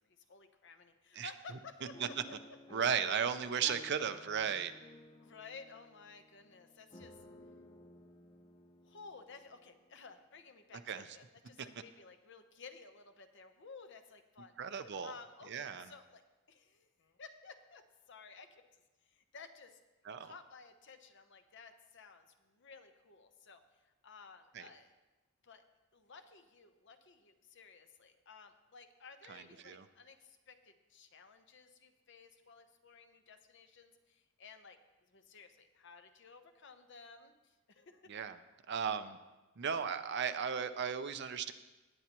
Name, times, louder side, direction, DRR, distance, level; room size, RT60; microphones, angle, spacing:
voice 1, 0.0-2.2 3.6-3.8 5.2-7.2 8.8-14.6 15.0-16.2 16.5-19.8 20.2-24.9 25.4-25.6 25.9-34.8 35.1-38.1, left 4 dB, 60° left, 7 dB, 0.9 m, -55 dB
sound 1, 1.9-10.0 10.6-10.7 11.0-11.3, left 2 dB, 20° left, 0.6 m, -57 dB
voice 2, 2.7-4.7 10.9-11.0 14.6-15.1 15.5-15.9 20.0-20.3 24.5-24.7 29.3-29.9 38.1-38.4 38.7-39.2 39.6-41.5, right 7 dB, 55° right, 9 dB, 0.6 m, -35 dB
19.0 x 8.5 x 3.0 m, 1.1 s
head